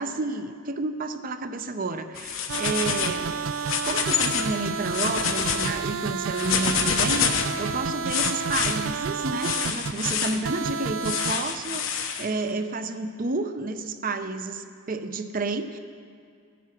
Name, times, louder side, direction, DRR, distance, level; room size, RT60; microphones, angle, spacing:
voice 1, 0.0-3.3 3.8-15.8, right 3 dB, 45° right, 9 dB, 0.7 m, -30 dB
sound 1, 2.1-3.2 3.5-4.5 4.8-5.7 6.3-7.6 8.1-8.7 9.4-10.4 11.0-12.2, left 7 dB, 90° left, 1.1 m, -27 dB
sound 2, 2.5-11.3, right 5 dB, 85° right, 0.4 m, -30 dB
15.0 x 9.3 x 5.9 m, 2.3 s
head